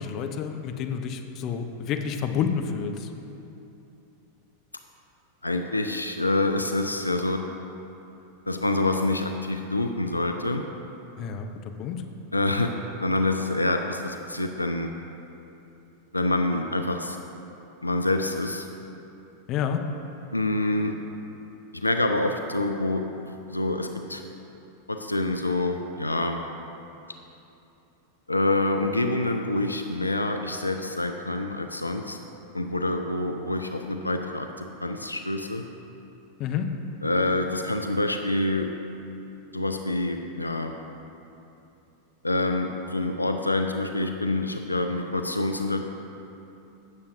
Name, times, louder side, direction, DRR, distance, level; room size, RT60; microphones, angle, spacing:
voice 1, 0.0-3.1 11.2-12.0 19.5-19.8 36.4-36.7, left 7 dB, 35° left, 5 dB, 0.6 m, -29 dB
voice 2, 5.4-7.4 8.5-10.6 12.3-12.7 13.0-14.9 16.1-17.2 17.8-18.7 20.3-20.9 21.7-24.2 24.9-26.4 28.3-32.2 32.5-35.6 37.0-38.7 39.5-40.7 42.2-45.9, left 2 dB, 85° left, 5 dB, 0.4 m, -26 dB
16.0 x 6.9 x 2.6 m, 2.9 s
figure-of-eight pair, 90°, 0 cm